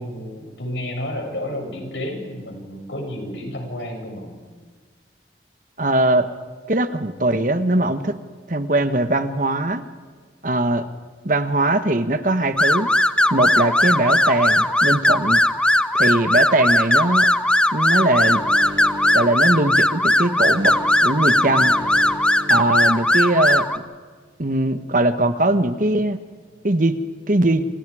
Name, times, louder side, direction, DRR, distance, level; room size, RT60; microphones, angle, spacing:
voice 1, 0.0-4.3, left 1 dB, 90° left, 2 dB, 6.8 m, -31 dB
voice 2, 5.8-6.3 6.7-8.2 8.5-9.8 10.4-10.9 11.2-12.9 13.3-15.4 15.9-17.3 17.7-18.4 19.1-21.8 22.5-23.7 24.4-26.2 26.6-27.0 27.3-27.6, right 1 dB, 50° right, 10 dB, 1.3 m, -20 dB
sound 1, 12.6-23.8, left 1 dB, 5° left, 0.6 m, -18 dB
sound 2, 18.0-23.6, left 1 dB, 25° right, 2.7 m, -36 dB
28.5 x 28.0 x 5.0 m, 1.5 s
head